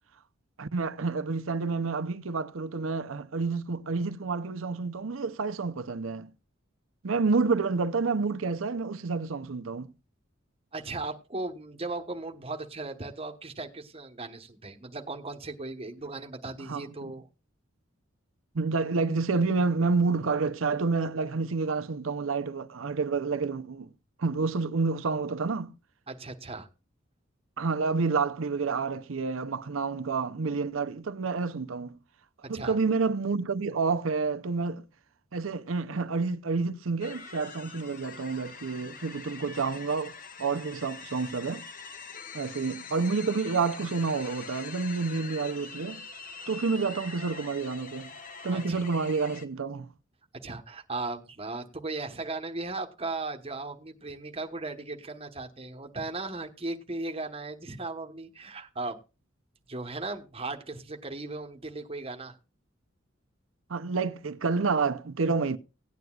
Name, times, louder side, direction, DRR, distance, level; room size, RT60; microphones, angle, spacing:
voice 1, 0.6-6.3 7.0-9.9 16.7-17.1 18.5-23.9 24.2-25.7 27.6-32.0 32.5-34.8 35.3-40.1 40.4-41.6 42.3-46.0 46.5-48.1 48.4-49.9 63.7-65.6, right 4 dB, 90° right, 0.7 m, -29 dB
voice 2, 10.7-17.3 26.1-26.7 32.5-32.8 48.5-48.8 50.4-59.0 59.7-62.4, right 3 dB, 30° right, 1.2 m, -37 dB
sound 1, 37.0-49.4, left 5 dB, 45° left, 1.1 m, -44 dB
17.5 x 9.3 x 2.4 m
head